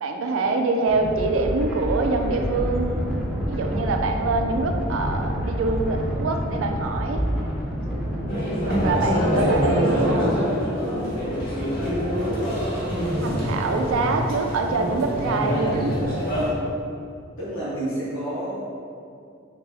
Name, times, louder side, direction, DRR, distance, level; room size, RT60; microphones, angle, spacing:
voice 1, 0.0-3.1 3.5-7.3 8.7-10.5 13.2-16.1, right 3 dB, 80° right, 5 dB, 0.3 m, -25 dB
sound 1, 0.9-8.2, equal, 5° right, 0.7 m, -28 dB
sound 2, 8.3-16.5, equal, 55° left, 1.4 m, -24 dB
voice 2, 17.4-18.6, right 1 dB, 75° left, -10 dB, 1.4 m, -29 dB
4.0 x 3.5 x 3.3 m, 2.4 s
head